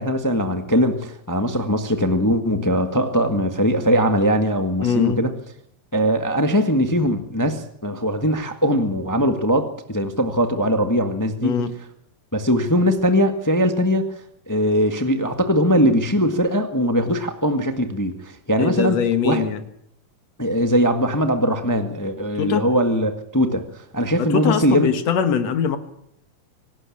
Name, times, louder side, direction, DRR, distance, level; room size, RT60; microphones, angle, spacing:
voice 1, 0.0-5.3 5.9-11.6 12.3-14.0 14.5-19.0 19.2-19.4 20.4-23.6 23.9-24.9, equal, 25° left, 6 dB, 0.4 m, -20 dB
voice 2, 4.8-5.2 11.4-11.7 18.6-19.6 22.4-22.7 24.2-25.8, left 7 dB, 65° left, 9 dB, 2.4 m, -22 dB
25.0 x 12.5 x 8.6 m, 0.74 s
omnidirectional pair, 3.6 m